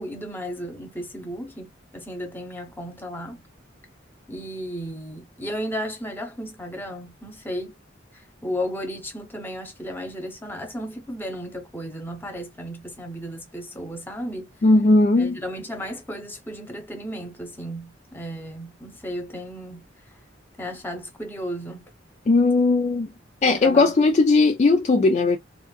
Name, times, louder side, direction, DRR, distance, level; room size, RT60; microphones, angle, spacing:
voice 1, 0.0-3.4 4.3-7.7 8.1-14.5 15.2-19.9 20.6-21.9 23.4-24.0, equal, 10° left, 0.8 m, -34 dB
voice 2, 14.6-15.4 22.3-23.1 23.4-25.4, left 3 dB, 35° left, 0.4 m, -18 dB
3.4 x 2.5 x 2.3 m
head